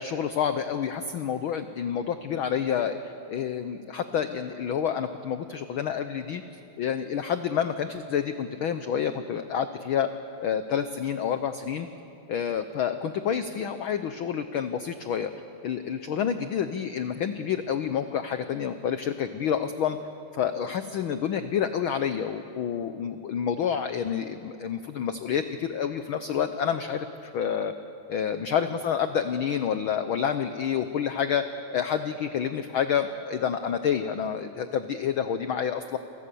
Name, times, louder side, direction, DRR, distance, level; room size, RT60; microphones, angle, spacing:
voice 1, 0.0-6.4 6.8-10.1 10.4-11.9 12.3-15.3 15.6-20.0 20.3-27.7 28.1-31.4 31.7-36.0, left 8 dB, 90° left, 9 dB, 1.1 m, -28 dB
29.0 x 24.5 x 7.0 m, 2.8 s
omnidirectional pair, 3.4 m